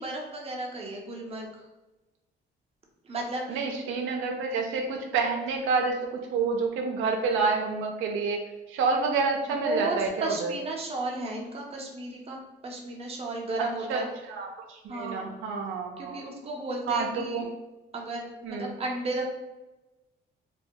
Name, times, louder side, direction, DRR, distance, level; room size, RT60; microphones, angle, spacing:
voice 1, 0.0-1.6 3.0-3.6 9.5-14.1 14.9-15.2 16.0-17.5 17.9-19.2, right 2 dB, 30° right, 0 dB, 0.5 m, -34 dB
voice 2, 3.5-8.4 8.7-10.5 13.9-14.0 14.3-16.2 16.9-17.5 18.4-18.7, right 4 dB, 90° right, 1 dB, 0.4 m, -28 dB
2.2 x 2.2 x 2.6 m, 1.1 s
cardioid pair, 90°, 20 cm